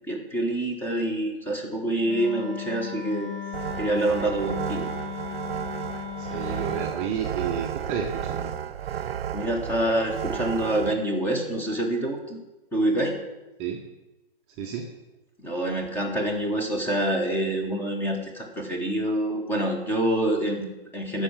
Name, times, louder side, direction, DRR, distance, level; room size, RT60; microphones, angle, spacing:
voice 1, 0.1-3.3 3.8-4.9 9.3-12.4 12.7-13.2 15.4-21.2, right 1 dB, 5° left, 2 dB, 1.1 m, -26 dB
Wind instrument woodwind instrument, 2.0-6.9, left 7 dB, 65° left, 2.4 m, -36 dB
sound 1, 3.5-10.9, right 9 dB, 80° right, 0.5 m, -33 dB
voice 2, 6.2-8.5 13.6-13.8 14.6-14.8, right 7 dB, 20° right, 0 dB, 0.7 m, -31 dB
11.0 x 4.9 x 7.1 m, 1.1 s
hypercardioid pair, 135°, 29 cm